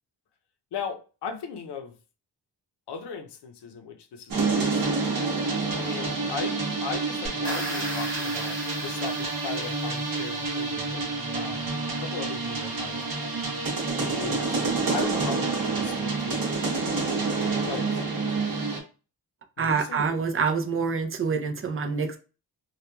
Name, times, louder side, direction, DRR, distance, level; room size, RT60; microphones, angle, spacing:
voice 1, 0.7-2.0 2.9-4.9 5.8-11.1 11.3-11.7 12.0-13.1 14.0-16.6 17.7-18.0 19.6-20.2, left 6 dB, 75° left, 0.6 m, -37 dB
sound 1, 4.3-18.8, right 3 dB, 55° right, 0.9 m, -28 dB
sound 2, 7.2-10.4, right 1 dB, 10° left, 0.9 m, -38 dB
voice 2, 19.6-22.2, right 5 dB, 35° right, 0.4 m, -26 dB
2.8 x 2.2 x 2.2 m
wide cardioid pair, 110°, 41 cm